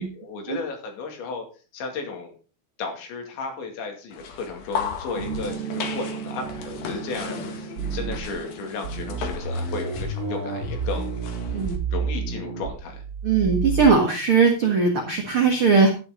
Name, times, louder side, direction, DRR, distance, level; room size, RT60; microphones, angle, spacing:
voice 1, 0.0-1.5 1.7-2.3 2.8-11.3 11.9-13.0, left 4 dB, 75° left, 3 dB, 4.6 m, -34 dB
sound 1, 4.1-11.8, left 6 dB, 60° left, 3.0 m, -36 dB
sound 2, 5.1-9.2, right 7 dB, 65° right, 2.4 m, -36 dB
sound 3, 7.8-8.4 8.8-13.9, right 4 dB, 40° right, 3.2 m, -29 dB
voice 2, 13.2-15.9, right 5 dB, 85° right, 2 dB, 1.2 m, -19 dB
11.5 x 10.5 x 3.9 m, 0.36 s
omnidirectional pair, 5.3 m